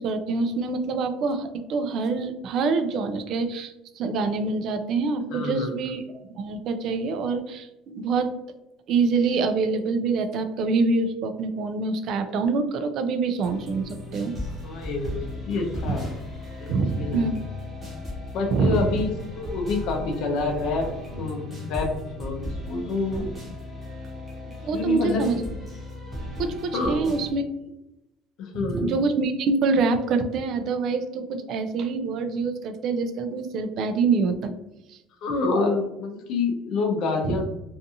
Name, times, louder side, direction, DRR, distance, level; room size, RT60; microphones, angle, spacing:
voice 1, 0.0-8.3 8.9-14.4 15.8-16.0 16.7-17.4 18.5-18.9 24.6-25.5 26.4-27.4 28.5-34.5 34.9-35.0 37.2-37.4, right 4 dB, 45° right, 8 dB, 0.3 m, -25 dB
voice 2, 5.3-5.7 14.6-15.1 15.5-16.2 16.6-17.3 18.3-20.9 21.2-21.9 22.2-23.3 24.7-25.3 26.7-27.2 28.4-28.9 35.2-37.5, left 3 dB, 55° left, 3 dB, 0.5 m, -27 dB
sound 1, 13.4-27.3, left 1 dB, 15° right, 0.8 m, -36 dB
sound 2, 13.8-18.3 19.1-22.4 23.1-23.2, left 4 dB, 25° left, 0.7 m, -42 dB
2.5 x 2.3 x 2.7 m, 0.92 s
cardioid pair, 160°, 0 cm